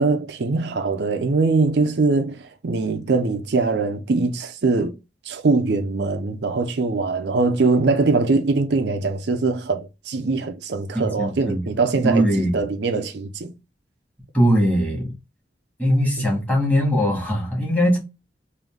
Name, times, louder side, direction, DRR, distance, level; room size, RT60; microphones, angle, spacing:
voice 1, 0.0-4.9 5.3-13.5 16.2-16.3, right 3 dB, 75° right, 0.5 m, -22 dB
voice 2, 10.9-11.6 12.0-12.5 14.3-15.1 15.8-18.0, equal, 10° left, 1.6 m, -20 dB
3.8 x 2.7 x 3.4 m
head